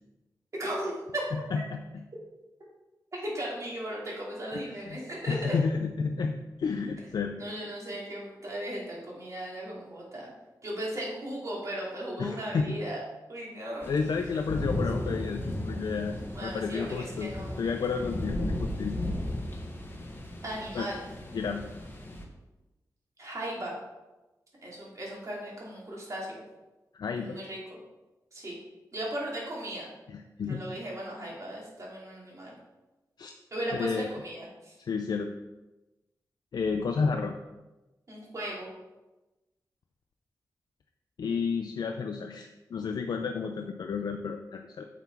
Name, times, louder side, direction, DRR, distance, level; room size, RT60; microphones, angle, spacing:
voice 1, 0.5-1.2 3.2-5.5 7.4-10.3 10.6-13.0 13.3-13.9 15.0-15.1 16.3-17.6 20.4-21.0 23.2-23.7 24.6-26.4 27.2-27.8 28.3-28.6 28.9-29.9 30.5-32.5 33.5-34.7 38.1-38.7, right 1 dB, 50° right, -4 dB, 2.8 m, -37 dB
voice 2, 1.3-1.8 4.5-5.0 5.3-7.4 12.2-12.8 13.9-17.3 17.6-19.0 20.7-20.9 21.3-21.6 26.9-27.4 30.1-30.6 33.2-33.3 33.7-34.1 34.8-35.3 36.5-37.3 41.2-44.9, left 5 dB, 80° left, 4 dB, 0.5 m, -31 dB
sound 1, 13.8-22.2, left 1 dB, 30° left, 1.4 m, -35 dB
7.0 x 5.9 x 4.6 m, 1.1 s
wide cardioid pair, 95°, 7 cm